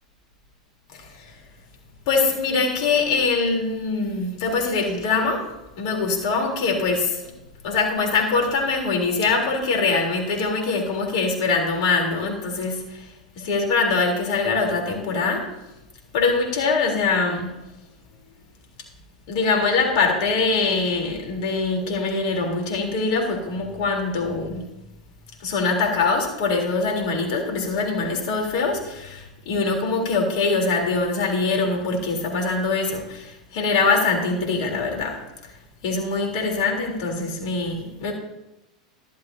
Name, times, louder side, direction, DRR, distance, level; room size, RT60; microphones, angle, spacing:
voice 1, 0.9-1.4 2.1-5.5 5.8-7.2 7.6-15.5 16.1-17.5 19.3-24.6 25.4-35.2 35.8-38.1, left 4 dB, 55° left, 0 dB, 3.7 m, -23 dB
15.0 x 12.5 x 2.8 m, 0.96 s
figure-of-eight pair, 90°, 4 cm